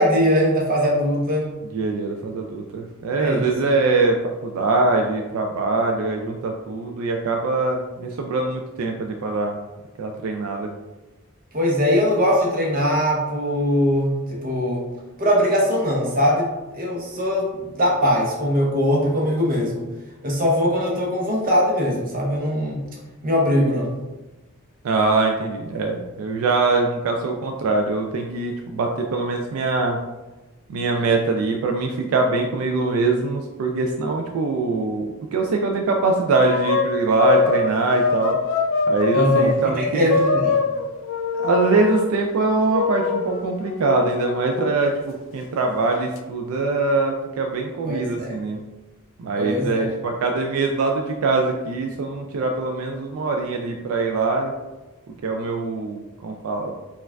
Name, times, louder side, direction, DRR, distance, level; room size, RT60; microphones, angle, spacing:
voice 1, 0.0-1.5 3.2-3.5 11.5-14.8 15.2-16.5 16.7-19.9 20.2-22.8 23.2-23.9 39.1-40.6 47.9-48.4 49.4-49.9, equal, 40° right, -2 dB, 0.8 m, -21 dB
voice 2, 1.7-9.6 10.0-10.7 24.8-30.0 30.7-38.4 38.9-40.1 41.4-48.6 49.2-54.5 55.2-56.7, right 3 dB, 75° right, 2 dB, 0.3 m, -23 dB
sound 1, 36.2-39.5 40.1-42.1 42.7-44.7, left 5 dB, 65° left, 0.3 m, -22 dB
4.4 x 2.3 x 2.2 m, 1.1 s
head